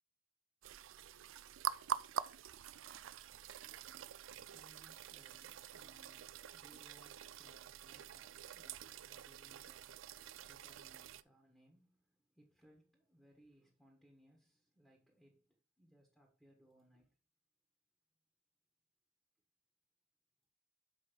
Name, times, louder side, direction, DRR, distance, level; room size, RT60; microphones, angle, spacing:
sound 1, 0.6-11.2, right 9 dB, 85° right, 0.4 m, -46 dB
voice 1, 3.6-17.2, right 1 dB, ahead, 1.4 m, -68 dB
6.4 x 5.2 x 5.1 m
head